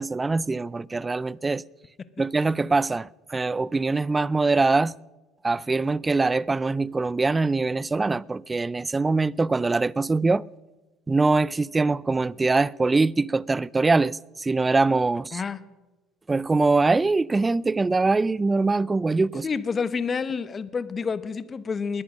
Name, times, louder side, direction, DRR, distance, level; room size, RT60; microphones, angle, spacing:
voice 1, 0.0-1.6 2.2-4.9 5.4-10.4 11.1-15.4 16.3-19.5, right 3 dB, 20° right, 0.4 m, -23 dB
voice 2, 15.3-15.6 19.4-22.0, left 5 dB, 35° left, 1.1 m, -28 dB
20.5 x 10.5 x 6.3 m
hypercardioid pair, 65°, 0 cm